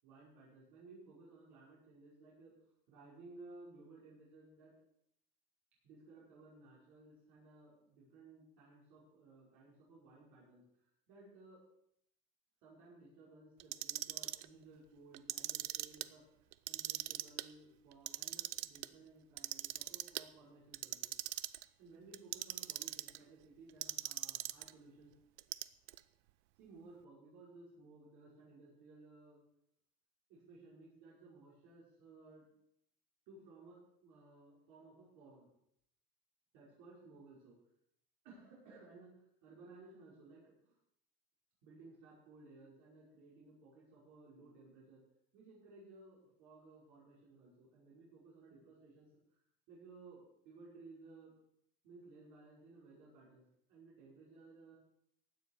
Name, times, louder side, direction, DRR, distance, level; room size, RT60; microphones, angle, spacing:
voice 1, 0.0-2.5 2.9-4.7 5.8-10.6 11.1-11.6 12.6-21.5 21.8-25.1 26.6-29.4 30.3-32.4 33.3-35.5 36.5-37.6 38.2-40.8 41.6-45.0 45.3-49.1 49.7-51.3 51.8-53.4 53.7-54.8, right 3 dB, 75° right, -6 dB, 5.6 m, -58 dB
Clock, 13.6-14.5 15.1-16.1 16.5-17.5 17.9-18.9 19.4-20.2 20.7-21.7 22.1-23.2 23.8-24.7 25.4-26.0, right 19 dB, 90° right, 0.6 m, -40 dB
16.0 x 9.8 x 4.8 m, 0.72 s
cardioid pair, 165°, 20 cm